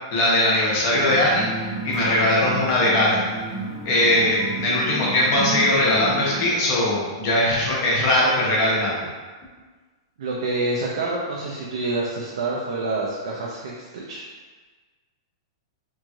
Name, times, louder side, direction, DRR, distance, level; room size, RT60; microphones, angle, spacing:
voice 1, 0.1-3.3 3.8-9.1, left 1 dB, 40° left, -5 dB, 0.9 m, -20 dB
sound 1, 0.9-6.5, right 3 dB, 40° right, 0.7 m, -32 dB
voice 2, 10.2-14.2, right 2 dB, 80° right, -3 dB, 0.5 m, -27 dB
3.1 x 2.6 x 2.4 m, 1.4 s
supercardioid pair, 160°, 2 cm